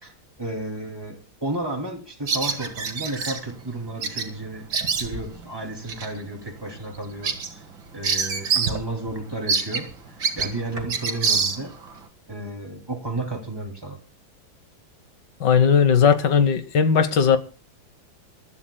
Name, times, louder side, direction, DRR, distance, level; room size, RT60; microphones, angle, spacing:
voice 1, 0.0-4.7 5.0-7.6 7.9-9.9 10.4-11.7 12.3-14.0, right 2 dB, 10° right, 2 dB, 2.5 m, -32 dB
Bird vocalization bird call bird song, 2.3-3.4 4.0-4.3 4.5-5.4 5.9-6.1 6.5-6.6 6.9-8.8 9.1-9.2 9.5-11.9, right 5 dB, 60° right, 2.3 m, -26 dB
voice 2, 15.4-17.4, left 6 dB, 65° left, 12 dB, 1.8 m, -17 dB
27.5 x 13.0 x 2.2 m, 0.32 s
omnidirectional pair, 2.1 m